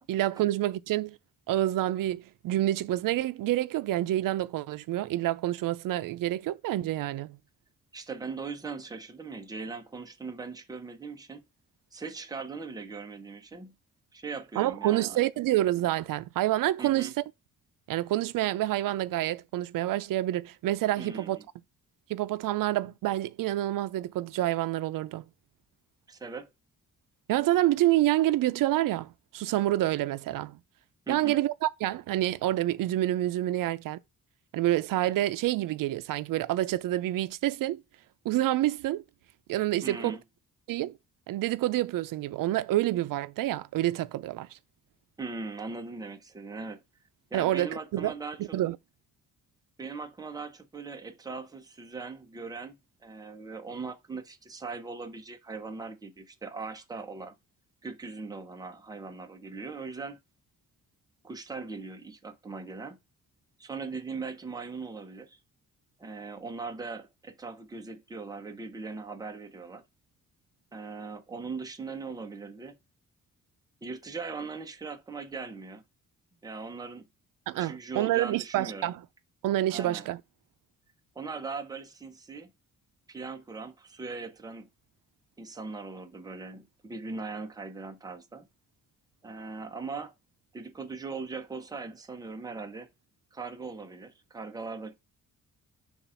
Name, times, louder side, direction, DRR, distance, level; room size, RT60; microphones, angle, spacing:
voice 1, 0.1-1.2 1.5-7.4 14.6-17.2 17.9-21.4 22.1-25.2 27.3-30.6 31.1-34.0 34.5-37.8 38.2-39.0 39.5-40.2 40.7-40.9 41.3-44.5 47.3-48.1 48.5-48.8 77.5-79.0 79.4-80.2, right 14 dB, 85° right, 0.5 m, -28 dB
voice 2, 7.9-11.4 11.9-13.7 14.1-15.2 16.8-17.1 21.0-21.5 26.1-26.5 31.1-31.4 39.8-40.2 45.2-46.8 47.3-48.6 49.8-52.8 53.0-57.3 57.8-60.2 61.2-63.0 63.6-65.4 66.0-69.8 70.7-72.7 73.8-75.8 76.4-77.1 77.6-78.9 79.7-80.1 81.1-82.5 83.1-84.7 85.4-88.5 89.2-90.1 90.5-92.9 93.3-94.9, right 4 dB, 10° right, 0.7 m, -40 dB
7.0 x 2.5 x 5.5 m
wide cardioid pair, 175°, 32 cm